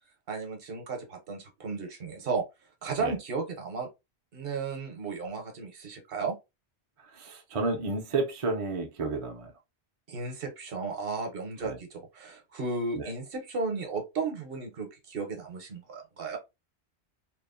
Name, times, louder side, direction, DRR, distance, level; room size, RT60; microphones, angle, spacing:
voice 1, 0.3-2.4 2.8-3.9 4.3-6.4 10.1-16.4, right 4 dB, 60° right, 0.9 m, -34 dB
voice 2, 7.2-9.5 11.6-11.8 13.0-13.1, right 3 dB, 45° right, 0.4 m, -31 dB
2.9 x 2.0 x 2.3 m
omnidirectional pair, 1.1 m